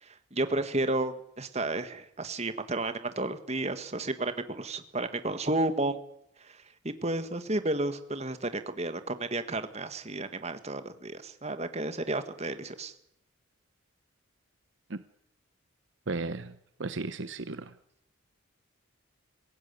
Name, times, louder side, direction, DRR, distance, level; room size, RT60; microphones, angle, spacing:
voice 1, 0.0-6.0 6.4-6.6 6.8-12.9, right 2 dB, 30° right, 10 dB, 1.6 m, -32 dB
voice 2, 16.1-17.7, right 3 dB, 60° right, 12 dB, 0.8 m, -35 dB
23.5 x 16.0 x 9.6 m, 0.79 s
head